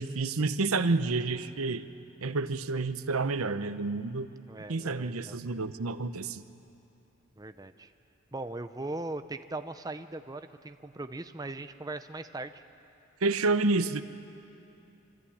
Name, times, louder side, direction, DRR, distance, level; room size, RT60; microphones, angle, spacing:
voice 1, 0.0-1.8 2.2-4.3 4.7-6.4 13.2-14.0, right 3 dB, 85° right, 11 dB, 0.9 m, -29 dB
voice 2, 4.5-5.4 7.4-7.9 8.3-12.6, right 2 dB, 15° right, 9 dB, 0.6 m, -39 dB
25.5 x 25.0 x 8.7 m, 2.8 s
head